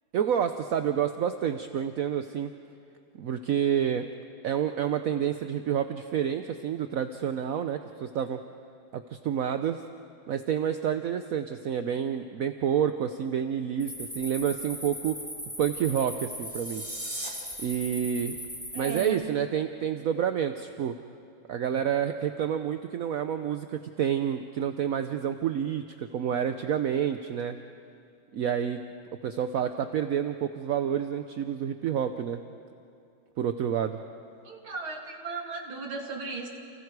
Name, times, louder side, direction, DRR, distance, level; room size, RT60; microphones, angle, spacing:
voice 1, 0.1-2.5 3.2-4.1 4.4-8.4 8.9-9.8 10.3-15.2 15.6-16.8 17.6-18.4 18.8-20.9 21.5-27.6 28.3-28.8 29.2-32.4 33.4-34.0, right 9 dB, 65° right, 8 dB, 0.9 m, -29 dB
sound 1, 13.8-19.1, equal, 5° right, 5.9 m, -39 dB
sound 2, 16.3-17.3, right 1 dB, 25° right, 3.7 m, -38 dB
voice 2, 18.7-19.2 34.4-36.5, right 4 dB, 80° right, 1 dB, 3.4 m, -36 dB
29.5 x 29.0 x 4.7 m, 2.5 s
omnidirectional pair, 2.2 m